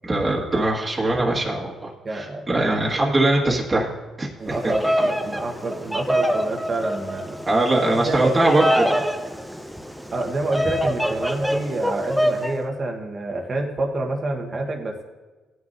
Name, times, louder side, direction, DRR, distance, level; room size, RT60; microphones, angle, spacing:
voice 1, 0.0-3.9 4.2-4.6 4.8-5.1 7.5-9.0, right 2 dB, 25° right, -3 dB, 1.7 m, -22 dB
voice 2, 2.0-2.4 4.4-7.4 7.8-8.6 10.1-15.0, right 2 dB, 40° right, 1 dB, 1.3 m, -28 dB
Bird vocalization bird call bird song, 4.5-12.5, equal, ahead, 0.8 m, -25 dB
17.0 x 9.7 x 2.7 m, 1.2 s
cardioid pair, 90°, 0 cm